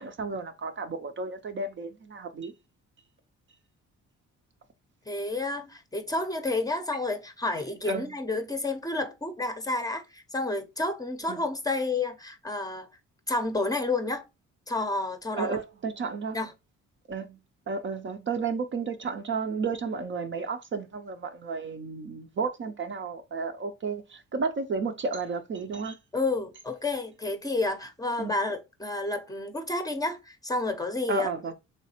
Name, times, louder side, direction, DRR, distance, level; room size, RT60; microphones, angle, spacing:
voice 1, 0.0-2.5 7.9-8.0 11.3-11.4 15.4-16.4 17.1-17.4 17.7-26.0 28.2-28.3 31.1-31.5, right 4 dB, 40° right, 0.5 m, -32 dB
voice 2, 5.1-12.9 13.3-14.2 14.7-15.6 16.3-16.5 26.1-31.5, left 2 dB, 10° left, 0.6 m, -30 dB
3.2 x 3.2 x 2.8 m
cardioid pair, 90°, 30 cm